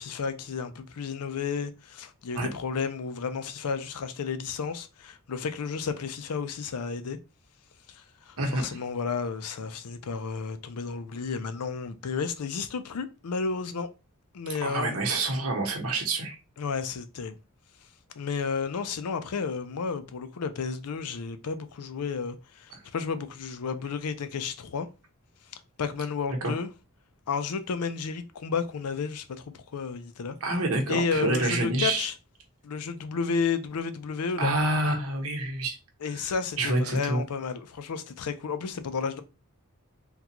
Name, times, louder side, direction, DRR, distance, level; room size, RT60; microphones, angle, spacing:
voice 1, 0.0-7.2 7.9-13.9 14.3-15.0 16.6-17.4 18.2-24.9 25.8-26.7 27.3-30.4 30.9-32.1 32.6-34.5 36.0-39.2, left 5 dB, 85° left, 0.5 m, -32 dB
voice 2, 14.6-16.4 26.4-26.5 30.4-32.1 34.4-35.8 36.6-37.2, right 2 dB, 70° right, 1.0 m, -27 dB
3.7 x 2.3 x 2.9 m
head